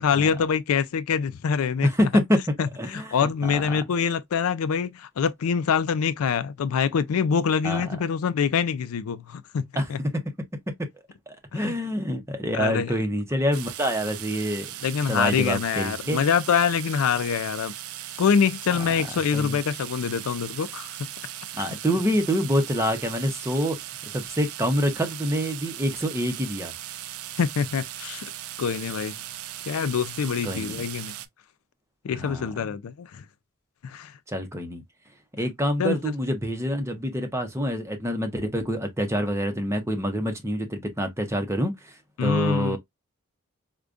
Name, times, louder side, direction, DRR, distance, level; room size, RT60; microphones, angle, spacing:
voice 1, 0.0-1.9 2.6-9.6 9.9-10.0 11.5-11.8 12.5-12.9 14.8-17.7 18.2-20.9 21.7-21.8 27.4-28.3 28.6-29.2 29.7-31.1 32.0-33.2 33.8-34.1 35.8-36.0 42.2-42.8, left 6 dB, 80° left, 0.4 m, -25 dB
voice 2, 1.8-3.7 7.6-8.0 9.7-9.9 11.3-14.7 15.1-16.2 19.3-19.6 21.5-23.8 24.1-26.7 30.4-30.7 32.1-32.5 34.3-34.8 35.4-42.8, equal, 15° right, 0.7 m, -26 dB
sound 1, 13.5-31.3, right 12 dB, 85° right, 0.5 m, -38 dB
4.8 x 2.2 x 2.5 m
head